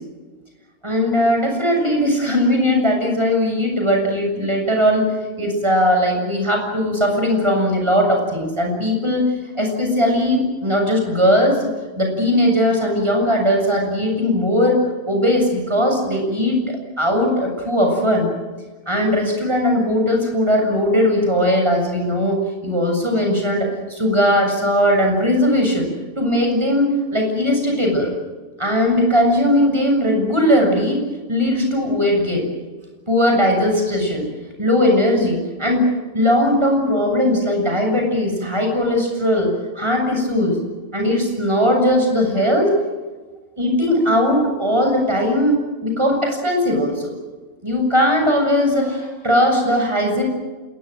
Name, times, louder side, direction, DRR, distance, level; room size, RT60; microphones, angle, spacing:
voice 1, 0.8-11.7 12.0-18.3 18.9-25.9 26.2-28.1 28.6-31.0 31.3-32.5 33.1-34.3 34.6-40.6 40.9-42.7 43.6-47.1 47.6-50.2, equal, 20° right, 2 dB, 7.2 m, -19 dB
27.5 x 21.5 x 7.9 m, 1.3 s
omnidirectional pair, 1.5 m